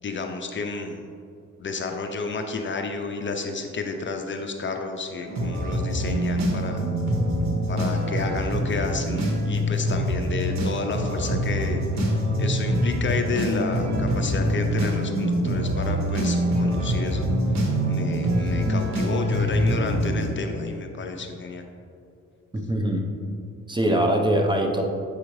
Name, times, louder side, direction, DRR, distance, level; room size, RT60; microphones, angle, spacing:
voice 1, 0.0-1.0 1.6-6.8 7.7-11.8 12.4-17.3 17.9-21.7, left 4 dB, 40° left, 4 dB, 0.5 m, -31 dB
sound 1, 5.3-20.3, equal, 65° right, 1.4 m, -24 dB
voice 2, 22.5-23.1 23.7-24.8, right 1 dB, 15° right, 1 dB, 0.8 m, -22 dB
8.0 x 4.8 x 3.2 m, 2.5 s
cardioid pair, 90°, 30 cm